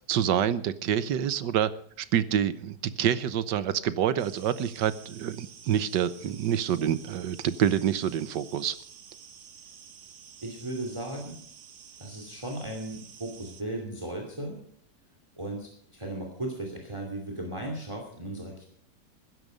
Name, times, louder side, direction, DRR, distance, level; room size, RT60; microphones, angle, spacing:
voice 1, 0.1-1.7 2.0-8.8, right 9 dB, 90° right, 14 dB, 1.5 m, -27 dB
sound 1, 4.2-13.6, right 8 dB, 70° right, 1.7 m, -50 dB
voice 2, 10.4-11.4 12.0-14.6 15.4-18.7, right 1 dB, 15° right, 2 dB, 2.7 m, -36 dB
15.5 x 12.5 x 5.2 m, 0.64 s
omnidirectional pair, 1.8 m